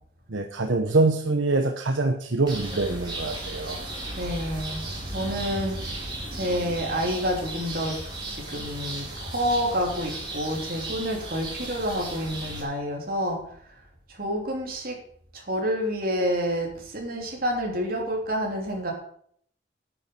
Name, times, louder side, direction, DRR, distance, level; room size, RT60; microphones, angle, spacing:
voice 1, 0.3-3.8, right 3 dB, 80° right, 5 dB, 1.1 m, -24 dB
sound 1, 2.5-12.6, right 1 dB, 25° right, 3.9 m, -35 dB
voice 2, 4.2-4.8 5.1-6.0 6.3-8.0 8.2-13.4 14.1-15.0 15.3-18.9, equal, 50° right, 0 dB, 3.2 m, -28 dB
9.6 x 8.8 x 6.8 m, 0.64 s
head